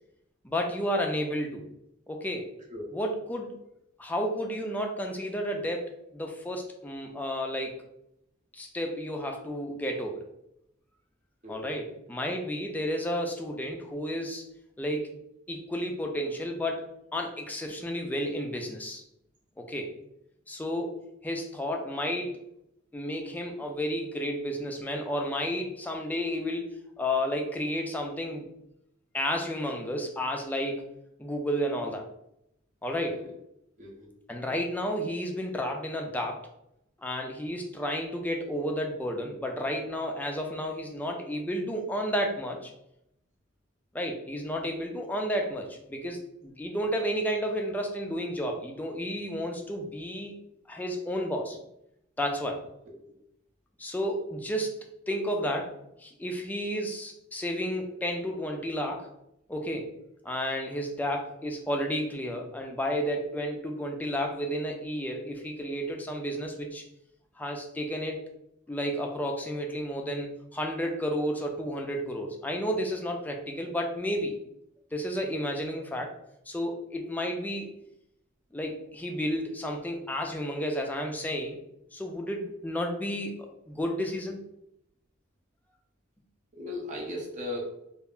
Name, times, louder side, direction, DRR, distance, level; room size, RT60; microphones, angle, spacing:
voice 1, 0.4-1.6 2.1-2.5 2.9-3.5 4.0-7.8 8.5-10.3 11.5-14.4 14.8-15.1 15.5-19.0 19.6-19.9 20.5-21.0 21.2-22.3 22.9-26.7 27.0-28.5 29.1-30.9 31.2-32.0 32.8-33.2 34.3-36.4 37.0-42.7 43.9-50.3 50.7-51.6 52.2-52.6 53.8-55.7 56.0-59.1 59.5-59.9 60.2-66.8 67.4-68.2 68.7-74.4 74.9-76.1 76.5-77.7 78.5-81.6 81.9-83.3 83.7-84.4, equal, 10° left, 2 dB, 0.4 m, -32 dB
voice 2, 86.5-87.7, left 1 dB, 40° right, -1 dB, 0.7 m, -37 dB
2.4 x 2.1 x 3.6 m, 0.80 s
head